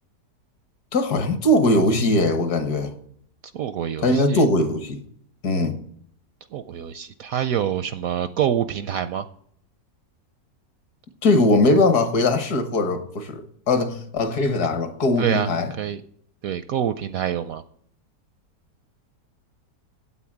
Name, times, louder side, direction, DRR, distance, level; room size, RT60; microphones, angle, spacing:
voice 1, 0.9-2.9 4.0-5.0 5.4-5.8 11.2-15.7, left 1 dB, 65° left, 1.7 m, -20 dB
voice 2, 3.5-4.4 6.5-9.2 15.2-15.5 15.8-16.0 16.4-17.6, right 9 dB, 70° right, 0.8 m, -26 dB
8.6 x 8.3 x 7.2 m
omnidirectional pair, 1.9 m